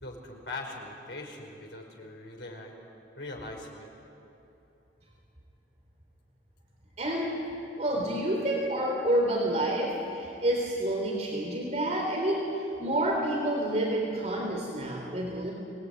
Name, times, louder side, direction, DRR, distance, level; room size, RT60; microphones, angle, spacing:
voice 1, 0.0-2.7 3.1-3.9, left 2 dB, 80° left, 1 dB, 5.0 m, -41 dB
voice 2, 7.0-7.5 7.8-15.5, right 1 dB, 40° right, -1 dB, 3.7 m, -29 dB
25.5 x 19.5 x 9.6 m, 2.9 s
head